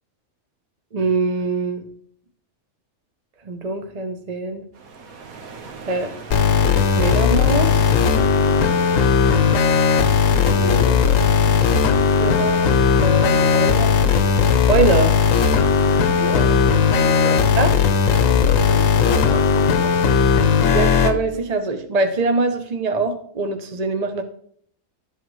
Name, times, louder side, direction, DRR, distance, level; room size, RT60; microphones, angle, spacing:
voice 1, 0.9-1.9 3.4-4.7 5.9-6.1 6.9-7.8 12.2-12.6 13.0-13.9 14.7-15.2 17.6-17.7 20.7-24.2, right 3 dB, 35° right, 6 dB, 0.6 m, -23 dB
sound 1, 4.7-17.4, right 4 dB, 70° right, 1.5 m, -38 dB
sound 2, 6.3-21.1, left 6 dB, 65° left, 1.1 m, -17 dB
voice 2, 10.4-11.1 16.2-17.4 18.2-19.9, left 4 dB, 30° left, 7 dB, 0.6 m, -30 dB
12.5 x 8.1 x 3.1 m, 0.63 s
omnidirectional pair, 1.6 m